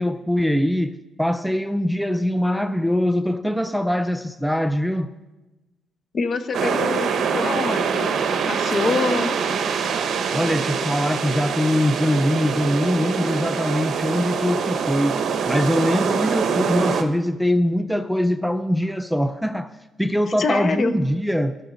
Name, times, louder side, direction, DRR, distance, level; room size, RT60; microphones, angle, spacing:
voice 1, 0.0-5.1 10.2-19.7 20.0-21.6, equal, ahead, 0.4 m, -22 dB
voice 2, 6.1-8.1 8.5-9.3 20.4-20.9, left 4 dB, 45° left, 0.8 m, -25 dB
sound 1, 6.5-17.0, right 6 dB, 60° right, 1.0 m, -24 dB
14.0 x 6.7 x 5.1 m
cardioid pair, 90°, 0 cm